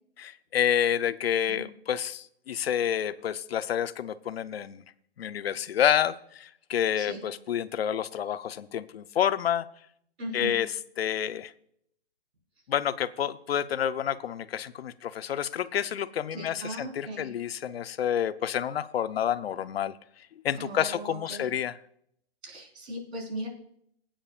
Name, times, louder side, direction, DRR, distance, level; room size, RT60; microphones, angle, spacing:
voice 1, 0.2-4.8 5.2-9.7 10.3-10.7 11.0-11.5 12.7-20.0 20.4-21.7, left 9 dB, 70° left, 13 dB, 0.7 m, -29 dB
voice 2, 10.2-10.6 16.3-17.3 20.6-21.5 22.4-23.5, right 1 dB, 90° right, 0 dB, 4.5 m, -38 dB
21.0 x 8.8 x 2.5 m, 0.70 s
hypercardioid pair, 175°, 31 cm